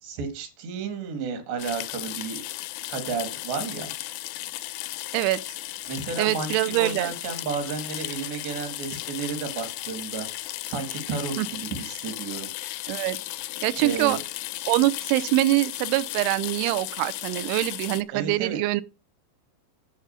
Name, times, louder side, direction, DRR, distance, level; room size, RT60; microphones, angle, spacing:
voice 1, 0.0-2.4 2.9-3.9 5.9-10.3 10.7-12.5 13.8-14.2 18.1-18.6, right 5 dB, 70° right, 4.0 m, -32 dB
sound 1, 1.6-18.0, left 16 dB, 85° left, 2.2 m, -35 dB
voice 2, 6.2-7.1 11.4-11.5 12.9-13.2 13.6-14.2 14.7-18.8, right 17 dB, 85° right, 3.0 m, -24 dB
11.0 x 5.0 x 8.0 m
omnidirectional pair, 5.3 m